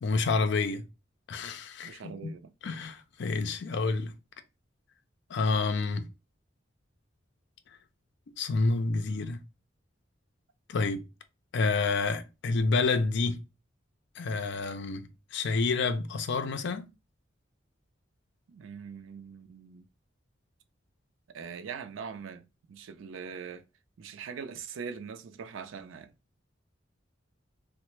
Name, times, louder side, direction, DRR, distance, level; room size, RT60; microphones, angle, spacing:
voice 1, 0.0-0.8 1.3-2.3 2.6-4.1 5.3-6.1 8.4-9.4 10.7-11.0 11.5-13.4 14.2-16.9, left 3 dB, 65° left, 0.4 m, -29 dB
voice 2, 1.8-2.5 18.5-19.9 21.3-23.6 24.0-26.1, right 6 dB, 90° right, 0.4 m, -42 dB
3.1 x 2.1 x 3.0 m
head